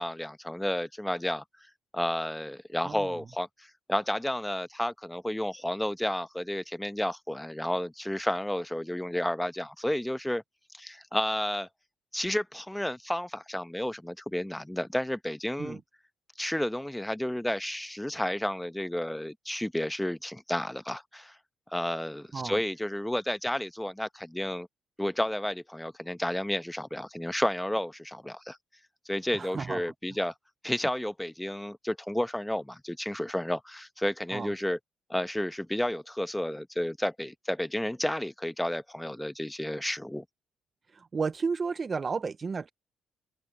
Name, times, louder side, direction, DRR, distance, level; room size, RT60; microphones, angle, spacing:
voice 1, 0.0-1.4 1.9-10.4 10.7-11.7 12.1-15.8 16.4-21.4 21.7-24.7 25.0-28.6 29.1-30.3 30.6-34.8 35.1-40.2, left 1 dB, 5° left, 0.9 m, -31 dB
voice 2, 29.3-29.9 34.3-34.5 40.9-42.7, right 5 dB, 35° right, 0.4 m, -33 dB
cardioid pair, 90°, 0 cm